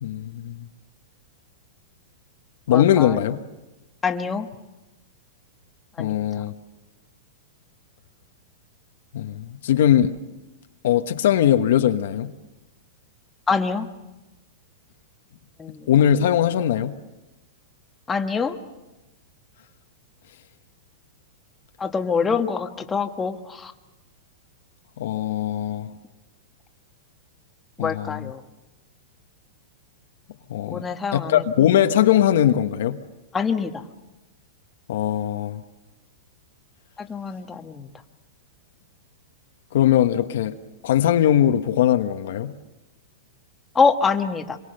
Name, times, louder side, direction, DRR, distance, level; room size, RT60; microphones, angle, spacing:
voice 1, 0.0-0.7 2.7-3.4 6.0-6.5 9.1-10.1 10.8-12.3 15.9-16.9 25.0-25.9 27.8-28.3 30.5-30.8 31.1-33.0 34.9-35.6 39.7-40.5 40.8-42.5, left 11 dB, 70° left, 1.2 m, -20 dB
voice 2, 2.7-3.2 4.0-4.5 6.0-6.3 13.5-13.9 15.6-15.9 18.1-18.6 21.8-23.7 27.8-28.4 30.7-31.4 33.3-33.8 37.0-37.9 43.7-44.6, left 5 dB, 15° left, 1.4 m, -25 dB
26.5 x 22.5 x 6.7 m
hypercardioid pair, 145°, 0 cm